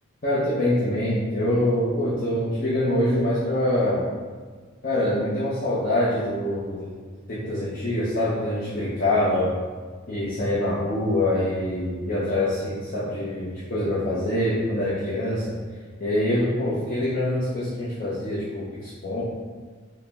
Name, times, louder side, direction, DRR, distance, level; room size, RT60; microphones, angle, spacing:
voice 1, 0.2-4.0 4.8-6.9 7.3-9.5 10.1-15.5 16.0-19.2, left 1 dB, 45° left, -9 dB, 0.7 m, -25 dB
4.8 x 2.1 x 3.4 m, 1.5 s
head